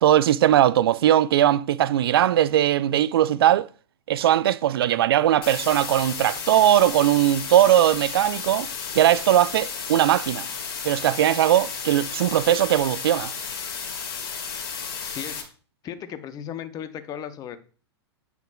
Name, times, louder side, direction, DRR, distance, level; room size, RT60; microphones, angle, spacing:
voice 1, 0.0-3.7 4.1-8.7 8.9-10.5 10.8-13.3, right 12 dB, 60° right, 0.4 m, -19 dB
sound 1, 5.4-15.4, left 6 dB, 55° left, 2.0 m, -33 dB
voice 2, 15.0-15.5 15.8-17.6, left 9 dB, 25° left, 0.8 m, -36 dB
9.0 x 5.8 x 2.3 m
figure-of-eight pair, 110°, 14 cm